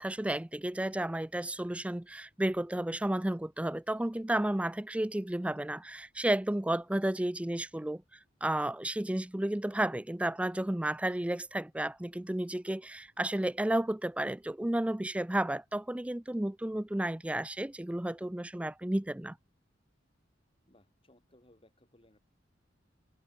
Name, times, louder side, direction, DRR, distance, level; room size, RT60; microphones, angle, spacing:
voice 1, 0.0-8.0 8.4-19.4, right 1 dB, 5° right, 0.4 m, -32 dB
voice 2, 20.7-22.2, left 1 dB, 30° left, 5.4 m, -63 dB
head